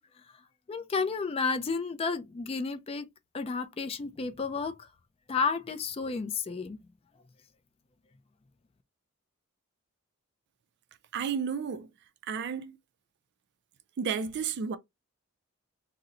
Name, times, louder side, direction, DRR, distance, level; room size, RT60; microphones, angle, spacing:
voice 1, 0.7-3.1 3.3-4.8 5.3-6.8, left 4 dB, 25° left, 0.3 m, -31 dB
voice 2, 11.1-11.9 12.2-12.8 14.0-14.8, right 6 dB, 50° right, 0.4 m, -32 dB
3.9 x 2.0 x 2.4 m
head